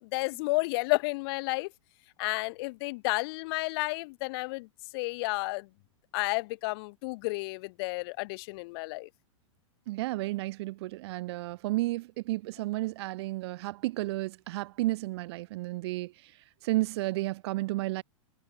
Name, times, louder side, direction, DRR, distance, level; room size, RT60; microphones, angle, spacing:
voice 1, 0.0-1.7 2.2-4.7 4.9-5.7 6.1-9.1, left 25 dB, 50° left, 2.9 m, -31 dB
voice 2, 9.9-16.3 16.6-18.0, right 19 dB, 55° right, 1.2 m, -32 dB
hypercardioid pair, 140°, 16 cm